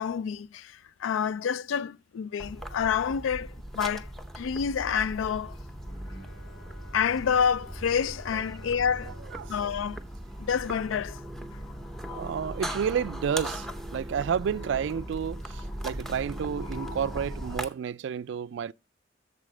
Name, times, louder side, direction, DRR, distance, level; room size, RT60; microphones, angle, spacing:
voice 1, 0.0-4.1 4.4-5.6 6.9-9.1 9.5-10.0 10.4-11.2, left 7 dB, 85° left, 0.3 m, -28 dB
sound 1, 2.4-17.7, equal, ahead, 0.6 m, -39 dB
Bowed string instrument, 5.8-11.1, equal, 65° left, 1.6 m, -49 dB
voice 2, 12.1-18.7, right 7 dB, 70° right, 0.3 m, -31 dB
8.4 x 6.8 x 3.2 m
head